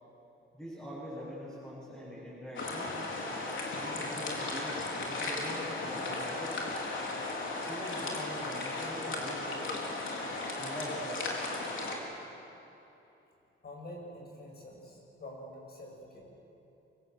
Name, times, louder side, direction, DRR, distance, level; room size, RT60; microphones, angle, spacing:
voice 1, 0.5-3.0 3.8-6.5 7.7-9.7 10.5-11.4, equal, 5° left, -10 dB, 8.0 m, -43 dB
sound 1, 2.6-12.0, left 2 dB, 65° left, 4.3 m, -36 dB
voice 2, 13.6-16.2, left 1 dB, 50° left, -1 dB, 7.6 m, -46 dB
25.0 x 24.5 x 8.1 m, 3.0 s
wide cardioid pair, 160°, 21 cm